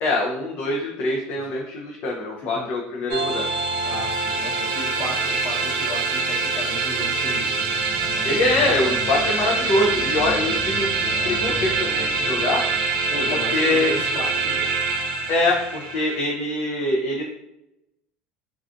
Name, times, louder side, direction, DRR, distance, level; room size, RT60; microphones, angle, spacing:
voice 1, 0.0-3.5 8.2-12.6 13.3-13.9 15.3-17.2, left 2 dB, 55° left, -2 dB, 0.4 m, -24 dB
voice 2, 2.4-2.7 3.8-7.7 10.3-10.4 13.1-14.6, left 1 dB, 40° left, -5 dB, 0.9 m, -34 dB
sound 1, 3.1-16.2, right 4 dB, 65° right, 0.4 m, -24 dB
sound 2, 7.6-14.3, left 2 dB, ahead, 0.7 m, -38 dB
2.4 x 2.3 x 2.5 m, 0.88 s
supercardioid pair, 100°, 5 cm